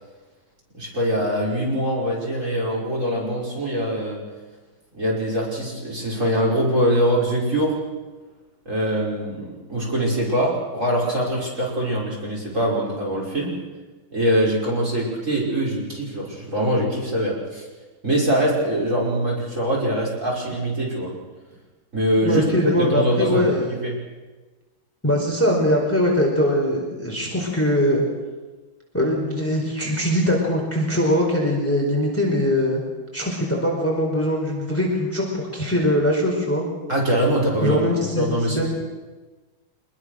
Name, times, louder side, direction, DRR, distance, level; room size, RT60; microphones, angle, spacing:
voice 1, 0.7-4.2 4.9-7.8 8.7-13.5 14.1-17.6 18.0-21.1 21.9-23.9 36.9-37.8 38.2-38.7, right 1 dB, 35° right, -3 dB, 6.2 m, -23 dB
voice 2, 22.2-23.8 25.0-28.0 28.9-32.8 33.1-36.6 37.6-38.2 38.5-38.7, left 1 dB, 5° left, -1 dB, 4.8 m, -21 dB
26.0 x 21.5 x 6.6 m, 1.2 s
omnidirectional pair, 2.3 m